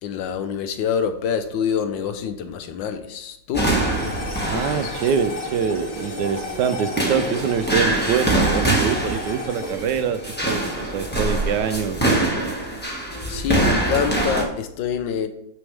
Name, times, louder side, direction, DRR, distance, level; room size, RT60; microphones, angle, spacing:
voice 1, 0.0-3.7 4.5-5.1 12.6-15.3, left 7 dB, 75° left, 9 dB, 1.4 m, -26 dB
sound 1, 3.5-14.4, right 2 dB, 5° left, 1.3 m, -24 dB
sound 2, 3.6-12.1, left 2 dB, 50° left, 2.2 m, -36 dB
voice 2, 4.4-10.2 10.4-12.1, right 7 dB, 75° right, 10 dB, 1.1 m, -24 dB
9.2 x 6.2 x 3.3 m, 0.79 s
omnidirectional pair, 2.1 m